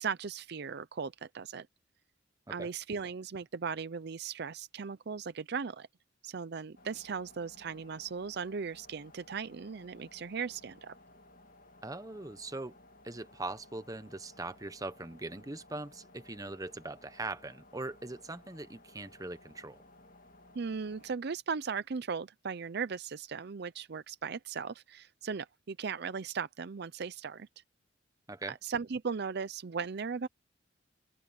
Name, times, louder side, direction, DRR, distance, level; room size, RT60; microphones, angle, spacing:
voice 1, 0.0-1.7 2.5-5.9 6.2-10.9 20.5-27.5 28.6-30.3, right 5 dB, 55° right, 0.5 m, -37 dB
sound 1, 6.7-21.2, left 2 dB, 45° left, 2.1 m, -58 dB
voice 2, 11.8-12.8 13.0-19.8 28.3-28.5, right 2 dB, 20° right, 1.0 m, -41 dB
open air
head